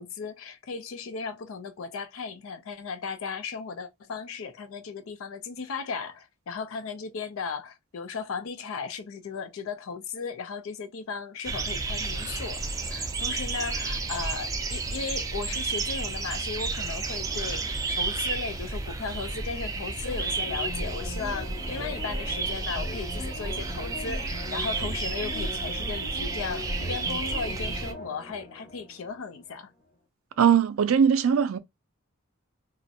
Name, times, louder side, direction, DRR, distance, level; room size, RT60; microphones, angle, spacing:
voice 1, 0.0-29.7, left 5 dB, 75° left, 0.4 m, -36 dB
sound 1, 11.4-27.9, right 3 dB, 15° right, 0.3 m, -31 dB
sound 2, 20.1-29.4 29.8-29.9, left 1 dB, 40° left, 0.9 m, -40 dB
voice 2, 30.4-31.6, right 7 dB, 85° right, 0.4 m, -20 dB
2.5 x 2.0 x 2.6 m
head